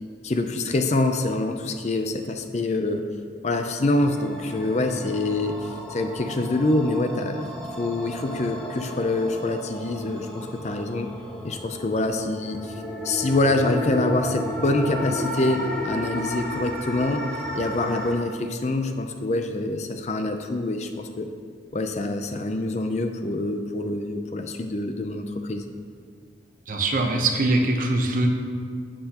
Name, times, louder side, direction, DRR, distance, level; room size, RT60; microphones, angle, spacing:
voice 1, 0.2-3.0 3.4-7.4 7.8-11.1 11.4-12.7 13.0-17.3 17.5-21.3 21.7-25.6, left 2 dB, 35° left, 6 dB, 0.5 m, -25 dB
sound 1, 4.0-18.1, equal, 5° left, 1.0 m, -34 dB
voice 2, 26.7-28.3, right 2 dB, 45° right, 2 dB, 0.9 m, -22 dB
12.0 x 7.8 x 2.9 m, 2.1 s
head